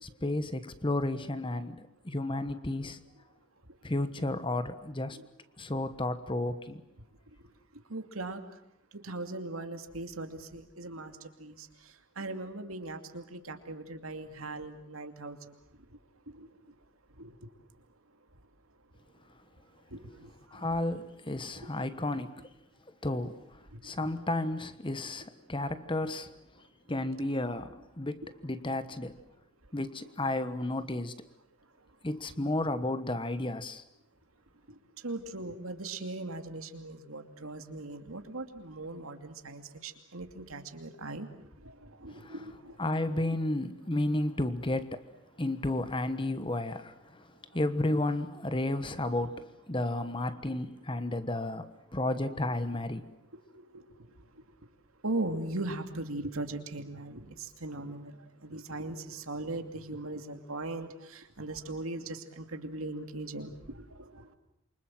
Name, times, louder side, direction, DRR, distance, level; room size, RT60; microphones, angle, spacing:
voice 1, 0.0-3.0 3.8-5.2 5.6-6.8 20.5-22.4 23.0-23.4 23.8-26.3 26.9-29.2 29.7-31.1 32.0-33.8 42.2-42.3 42.8-45.0 45.4-46.9 47.5-51.7 51.9-53.1, left 1 dB, 25° left, 1.2 m, -32 dB
voice 2, 7.9-8.4 8.9-11.5 12.2-15.4 16.4-16.5 17.2-17.3 19.9-20.0 35.0-41.3 42.0-42.5 43.1-43.3 53.7-53.8 55.0-57.2 57.6-63.5, right 2 dB, 80° right, 2.6 m, -39 dB
27.5 x 24.5 x 7.7 m
head